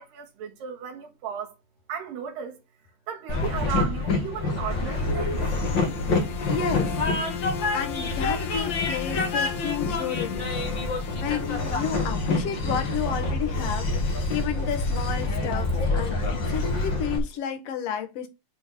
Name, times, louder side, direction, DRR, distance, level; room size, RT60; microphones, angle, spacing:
voice 1, 0.0-1.5 1.9-2.6 3.1-5.4, right 8 dB, 75° right, 3.3 m, -35 dB
Train, 3.3-17.2, left 3 dB, 40° left, 1.9 m, -27 dB
sound 1, 4.6-12.8, left 9 dB, 75° left, 3.5 m, -38 dB
voice 2, 6.0-7.0 7.7-10.5 10.8-18.3, left 8 dB, 60° left, 1.9 m, -32 dB
10.0 x 4.0 x 3.6 m
omnidirectional pair, 4.1 m